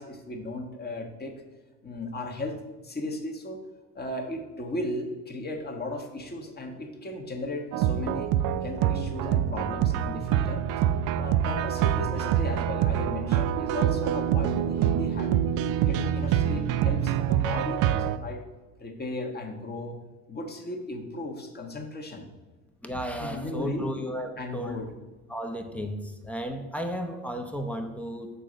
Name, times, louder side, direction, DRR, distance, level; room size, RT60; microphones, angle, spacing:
voice 1, 0.0-1.4 1.8-3.6 3.9-8.3 8.6-10.6 11.2-15.4 15.8-18.4 18.8-20.0 20.3-22.3 23.2-23.9 24.4-24.9, left 2 dB, 25° left, 2 dB, 1.3 m, -36 dB
sound 1, 7.7-18.2, right 10 dB, 55° right, 0.5 m, -25 dB
voice 2, 22.8-24.8 25.3-28.3, equal, 5° left, 4 dB, 0.9 m, -34 dB
6.9 x 3.7 x 6.4 m, 1.2 s
hypercardioid pair, 75°, 41 cm